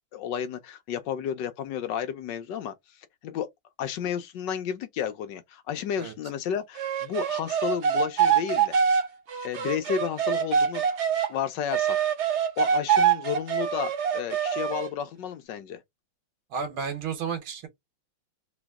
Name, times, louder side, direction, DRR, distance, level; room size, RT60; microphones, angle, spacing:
voice 1, 0.1-2.7 3.2-3.5 3.8-8.8 9.4-11.0 11.3-12.1 12.6-15.8, left 8 dB, 70° left, 1.2 m, -32 dB
sound 1, 6.8-11.3 11.7-14.9, right 7 dB, 60° right, 0.7 m, -25 dB
voice 2, 16.5-17.7, right 6 dB, 90° right, 1.8 m, -32 dB
3.5 x 3.1 x 3.5 m
omnidirectional pair, 2.2 m